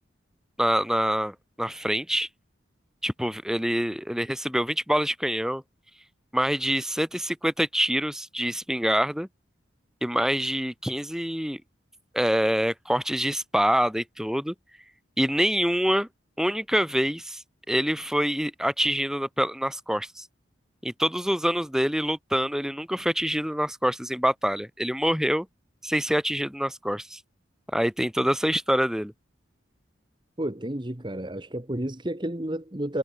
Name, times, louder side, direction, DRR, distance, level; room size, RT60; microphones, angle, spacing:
voice 1, 0.6-2.3 3.0-5.6 6.3-9.3 10.0-11.6 12.1-14.5 15.2-16.1 16.4-17.4 17.7-20.3 20.8-25.5 25.8-27.2 27.7-29.1, equal, 5° right, 1.9 m, -26 dB
voice 2, 30.4-33.0, right 1 dB, 25° right, 1.3 m, -31 dB
head